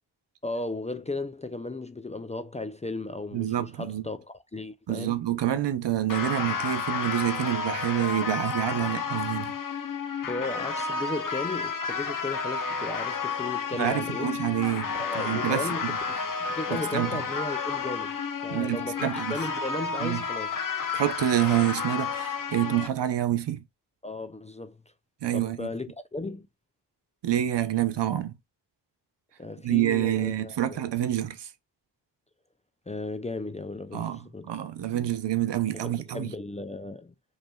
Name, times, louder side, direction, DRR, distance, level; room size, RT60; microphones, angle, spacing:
voice 1, 0.4-5.2 10.3-14.3 14.9-20.6 24.0-24.8 25.3-26.5 29.4-30.8 32.9-34.5 34.9-35.1 35.7-37.1, left 2 dB, 20° left, 0.3 m, -35 dB
voice 2, 3.3-4.0 4.9-9.5 13.7-16.0 16.7-17.2 18.5-19.4 20.0-20.2 20.9-23.6 25.2-25.7 27.2-28.4 29.6-31.5 33.9-36.3, right 12 dB, 90° right, 0.8 m, -27 dB
sound 1, 6.1-22.9, left 5 dB, 50° left, 0.9 m, -31 dB
5.2 x 3.2 x 2.2 m
wide cardioid pair, 135°, 41 cm